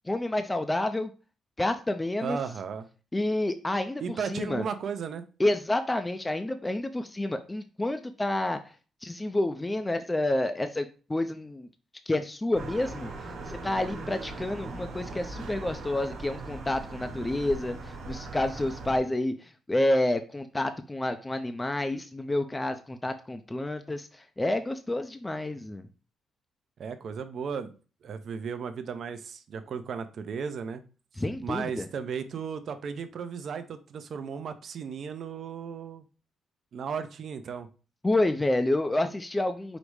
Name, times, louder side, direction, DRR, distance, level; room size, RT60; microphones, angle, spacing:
voice 1, 0.1-1.1 1.6-2.4 3.1-4.0 4.3-4.7 5.4-8.6 9.0-11.7 12.1-13.1 13.5-25.9 31.2-31.9 38.0-39.8, left 1 dB, 15° left, 8 dB, 0.4 m, -29 dB
voice 2, 2.2-2.9 4.0-5.2 26.8-27.7 28.0-30.8 31.4-36.0 36.7-37.7, right 6 dB, 60° right, 9 dB, 0.5 m, -35 dB
sound 1, 12.5-19.0, right 3 dB, 80° right, 1.1 m, -39 dB
5.0 x 2.1 x 4.6 m, 0.35 s
cardioid pair, 90°, 0 cm